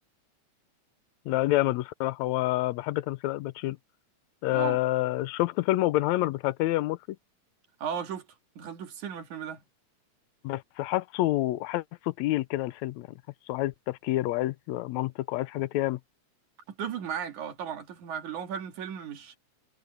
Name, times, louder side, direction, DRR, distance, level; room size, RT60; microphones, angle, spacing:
voice 1, 1.3-3.8 4.4-7.0 10.4-13.1 13.5-16.0, left 16 dB, 80° left, 1.8 m, -28 dB
voice 2, 4.5-4.8 7.8-8.3 8.6-9.6 16.7-19.4, right 8 dB, 90° right, 3.6 m, -35 dB
omnidirectional pair, 3.3 m